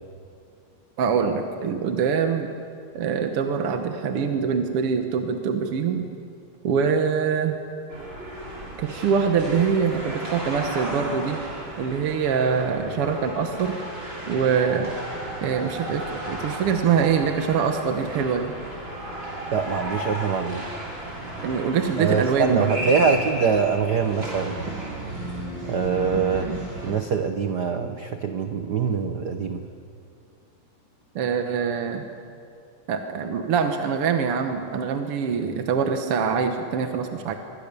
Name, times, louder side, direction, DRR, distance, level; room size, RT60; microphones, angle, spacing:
voice 1, 1.0-2.5 2.9-6.1 6.6-7.7 8.8-11.5 11.8-13.8 14.3-14.9 15.4-18.5 21.4-22.7 26.4-26.6 31.2-32.0 32.9-37.3, right 6 dB, 60° right, 5 dB, 1.9 m, -24 dB
sound 1, 7.9-26.9, right 1 dB, 40° right, 6.8 m, -34 dB
voice 2, 19.5-20.7 22.0-24.6 25.7-26.5 26.8-29.6, right 6 dB, 90° right, 7 dB, 0.9 m, -24 dB
26.0 x 22.5 x 6.9 m, 2.5 s
omnidirectional pair, 3.4 m